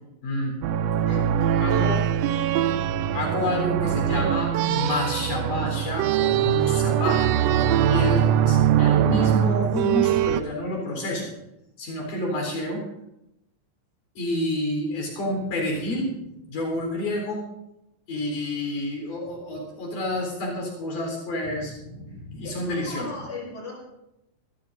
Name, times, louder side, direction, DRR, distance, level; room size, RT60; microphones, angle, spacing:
voice 1, 0.2-0.5 1.6-2.0 3.1-7.3 7.8-11.3 11.8-12.8 14.2-17.4 18.1-23.1, left 1 dB, 75° left, 0 dB, 5.5 m, -29 dB
sound 1, 0.6-10.4, right 10 dB, 85° right, 1.4 m, -22 dB
voice 2, 1.0-1.4 22.1-22.2 22.4-23.7, left 3 dB, 20° left, -3 dB, 5.6 m, -37 dB
25.0 x 15.0 x 2.6 m, 0.85 s
omnidirectional pair, 3.7 m